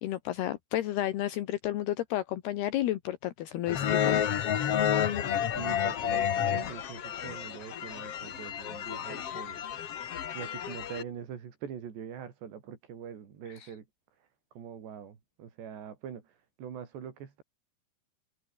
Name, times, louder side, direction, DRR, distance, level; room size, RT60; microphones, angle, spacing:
voice 1, 0.0-4.3, left 13 dB, 75° left, 3.2 m, -32 dB
sound 1, 3.7-11.0, left 9 dB, 55° left, 1.7 m, -30 dB
voice 2, 5.5-9.7 10.0-13.9 14.2-14.3 14.5-17.4, right 8 dB, 85° right, 5.6 m, -43 dB
omnidirectional pair, 4.8 m